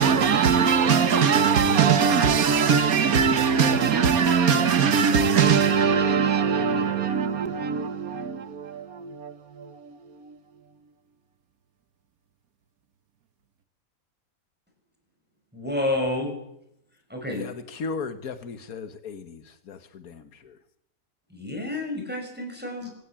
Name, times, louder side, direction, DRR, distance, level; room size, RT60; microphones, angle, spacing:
voice 1, 0.0-10.4, right 6 dB, 80° right, 1.8 m, -21 dB
voice 2, 15.5-16.3 17.1-17.4 21.3-22.9, left 2 dB, 5° right, 5.4 m, -29 dB
voice 3, 17.3-20.6, left 4 dB, 85° left, 1.7 m, -36 dB
25.0 x 16.5 x 8.9 m
omnidirectional pair, 1.5 m